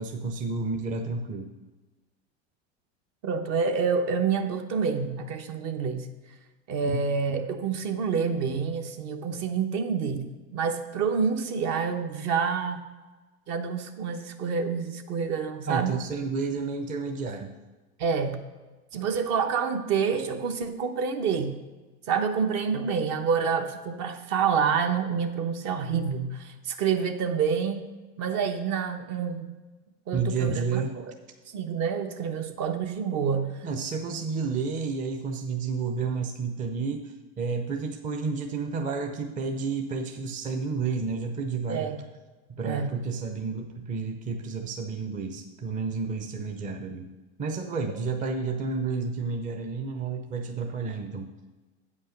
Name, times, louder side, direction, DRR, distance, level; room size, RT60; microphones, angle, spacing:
voice 1, 0.0-1.5 6.9-7.0 15.7-17.5 30.1-31.0 33.6-41.9 42.5-47.1 47.4-51.3, right 4 dB, 25° right, 4 dB, 0.7 m, -31 dB
voice 2, 3.2-6.1 6.7-12.8 13.5-16.0 18.0-18.4 18.9-21.5 22.1-27.9 28.2-29.5 30.1-31.0 31.5-33.5 41.7-42.0 42.6-42.9, right 6 dB, 50° right, 6 dB, 1.1 m, -28 dB
8.6 x 5.4 x 6.5 m, 1.2 s
supercardioid pair, 120°, 33 cm